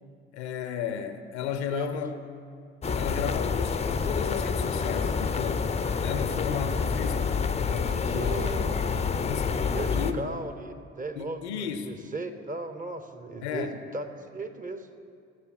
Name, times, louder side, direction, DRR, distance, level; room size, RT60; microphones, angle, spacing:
voice 1, 0.3-2.2 2.9-5.7 6.0-8.7 9.2-10.2 11.2-12.0 13.4-13.8, left 7 dB, 75° left, 8 dB, 0.6 m, -34 dB
voice 2, 1.7-2.0 8.1-8.7 9.7-14.1 14.3-14.9, right 3 dB, 25° right, 8 dB, 0.8 m, -36 dB
sound 1, 2.8-10.1, left 5 dB, 20° left, 0.5 m, -28 dB
14.0 x 6.9 x 4.3 m, 2.3 s
figure-of-eight pair, 45°, 34 cm